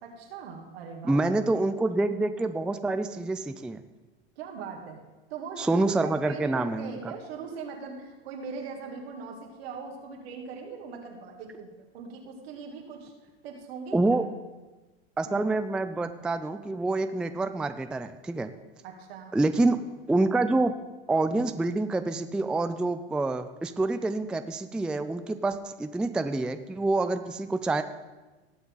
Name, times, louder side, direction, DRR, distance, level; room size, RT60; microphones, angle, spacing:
voice 1, 0.0-1.2 4.4-5.0 5.3-13.1 13.4-14.0 15.2-15.4 18.8-19.3, right 5 dB, 75° right, 1 dB, 2.6 m, -40 dB
voice 2, 1.1-3.8 5.6-6.9 13.9-14.2 15.2-18.5 19.3-19.8 20.1-20.7 21.1-27.8, right 2 dB, 5° right, 10 dB, 0.3 m, -27 dB
18.0 x 7.0 x 3.9 m, 1.2 s
hypercardioid pair, 105°, 31 cm